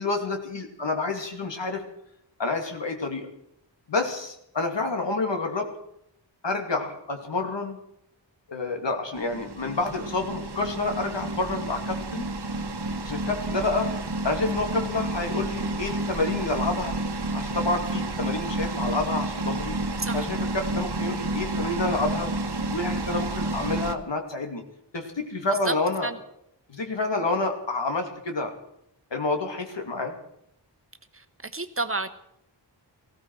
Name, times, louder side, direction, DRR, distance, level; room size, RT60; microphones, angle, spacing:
voice 1, 0.0-1.8 2.4-3.3 3.9-5.7 6.4-7.8 8.5-12.3 13.0-13.9 14.2-17.0 17.3-19.8 20.1-22.3 22.7-24.6 24.9-26.1 26.7-28.5 29.1-30.2, left 3 dB, 70° left, 4 dB, 2.5 m, -28 dB
sound 1, 9.1-24.0, right 2 dB, 60° right, 1.3 m, -30 dB
voice 2, 31.4-32.1, right 3 dB, 30° right, 10 dB, 1.1 m, -29 dB
19.0 x 15.5 x 4.7 m, 0.77 s
wide cardioid pair, 85°, 45 cm